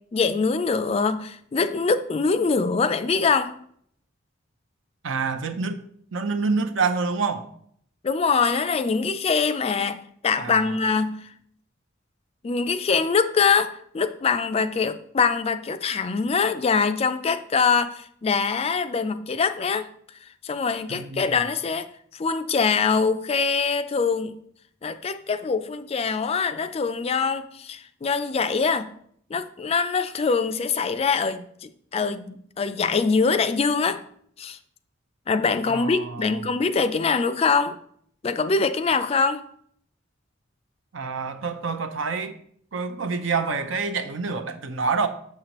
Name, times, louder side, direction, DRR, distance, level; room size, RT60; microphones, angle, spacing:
voice 1, 0.1-3.5 8.0-11.3 12.4-19.9 20.4-21.9 22.1-24.4 24.8-28.9 29.3-34.0 34.4-34.6 35.3-37.8 38.2-39.4, left 5 dB, 30° left, 10 dB, 0.3 m, -23 dB
voice 2, 5.0-5.8 6.1-7.5 10.4-10.8 20.9-21.3 35.6-36.4 40.9-42.4 42.7-45.1, right 4 dB, 70° right, 8 dB, 0.7 m, -27 dB
7.1 x 6.6 x 3.0 m, 0.65 s
head